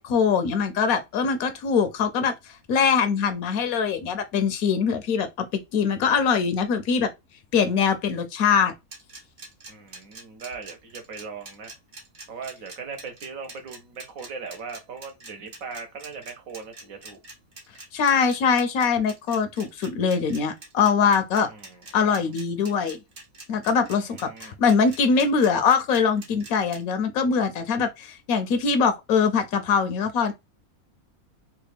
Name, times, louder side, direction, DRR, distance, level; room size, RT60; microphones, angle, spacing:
voice 1, 0.0-2.3 2.7-7.1 7.5-8.7 17.9-21.5 21.9-23.0 23.5-30.3, left 6 dB, 80° left, 1.0 m, -22 dB
sound 1, 8.9-26.8, right 3 dB, 40° right, 0.9 m, -44 dB
voice 2, 9.7-11.7 12.3-17.2 21.5-21.8 22.0-22.3 23.9-24.5, right 5 dB, 65° right, 1.2 m, -39 dB
3.2 x 2.3 x 3.3 m
omnidirectional pair, 1.5 m